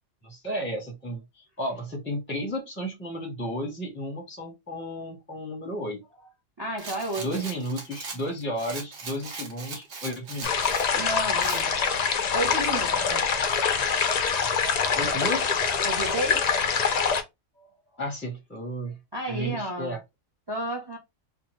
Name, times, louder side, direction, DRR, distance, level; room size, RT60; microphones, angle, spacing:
voice 1, 0.2-6.0 7.2-10.8 14.9-15.6 18.0-19.0 19.3-20.0, equal, 10° left, 0.7 m, -33 dB
voice 2, 6.6-7.4 10.9-11.7 12.1-13.4 15.8-16.5 17.6-17.7 19.1-19.9 20.5-21.0, right 1 dB, 30° right, 0.5 m, -32 dB
Rattle, 6.8-10.9 11.4-11.6, right 4 dB, 70° right, 1.2 m, -39 dB
sound 1, 10.4-17.2, left 6 dB, 65° left, 0.4 m, -25 dB
2.9 x 2.2 x 2.9 m
omnidirectional pair, 1.3 m